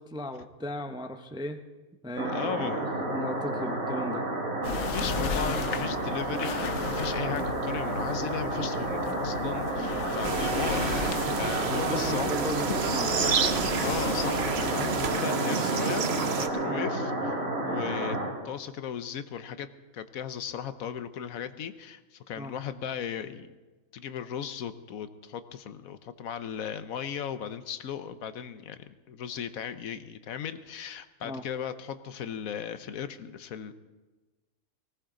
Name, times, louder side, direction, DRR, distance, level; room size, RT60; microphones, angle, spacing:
voice 1, 0.0-1.6 2.0-2.7 3.1-4.3 10.3-10.5 11.7-13.2 16.7-16.9 17.6-17.8 22.4-22.5 31.2-31.4, left 1 dB, 5° right, 7 dB, 0.5 m, -37 dB
sound 1, 2.2-18.3, right 1 dB, 75° right, 3.2 m, -31 dB
voice 2, 2.3-2.9 4.8-10.8 11.2-12.3 13.8-17.3 17.6-18.2 18.4-19.7 19.9-23.5 23.9-33.7, left 8 dB, 75° left, 12 dB, 1.2 m, -36 dB
sound 2, 4.6-15.1, left 7 dB, 60° left, 1.0 m, -37 dB
sound 3, 10.2-16.5, right 6 dB, 50° right, 1.0 m, -30 dB
19.0 x 18.0 x 3.8 m, 1.2 s
omnidirectional pair, 1.5 m